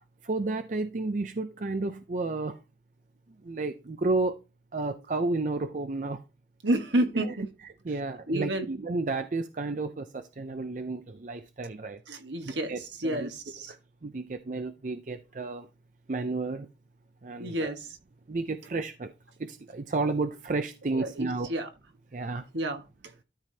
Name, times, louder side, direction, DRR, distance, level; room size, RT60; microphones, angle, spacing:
voice 1, 0.2-2.6 3.4-4.4 4.7-6.2 7.2-7.3 7.8-12.0 12.4-13.3 14.0-15.7 16.1-16.7 17.2-17.8 18.3-19.1 19.4-21.5 22.1-22.4, right 3 dB, 45° right, 0.5 m, -32 dB
voice 2, 6.6-7.4 8.3-8.7 9.6-9.7 12.1-13.7 17.4-18.0 20.9-21.7 22.5-22.8, right 1 dB, 80° right, 1.4 m, -30 dB
12.5 x 5.0 x 2.7 m
head